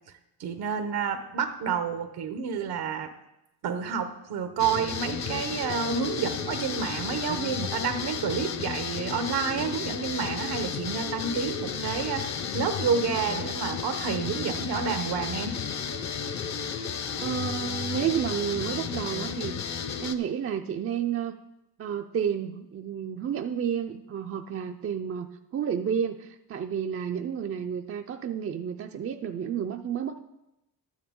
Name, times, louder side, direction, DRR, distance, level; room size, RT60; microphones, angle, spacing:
voice 1, 0.4-3.1 3.6-15.6, right 6 dB, 80° right, 8 dB, 0.9 m, -29 dB
sound 1, 4.6-20.2, left 6 dB, 45° left, 0.7 m, -33 dB
voice 2, 17.2-21.3 21.8-30.2, right 8 dB, 40° right, 5 dB, 0.4 m, -31 dB
12.0 x 9.3 x 3.7 m, 0.90 s
cardioid pair, 140°, 38 cm